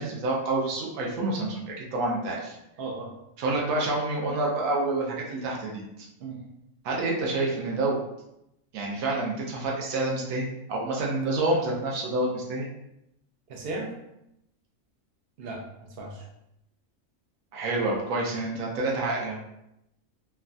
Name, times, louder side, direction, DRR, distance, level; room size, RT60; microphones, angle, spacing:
voice 1, 0.0-2.6 3.4-6.1 6.8-8.0 8.7-12.7 17.5-19.4, right 2 dB, 80° right, -2 dB, 1.1 m, -28 dB
voice 2, 2.8-3.1 6.2-6.4 13.5-13.9 15.4-16.2, right 2 dB, 55° right, -1 dB, 0.7 m, -36 dB
3.1 x 2.2 x 2.5 m, 0.83 s
omnidirectional pair, 1.4 m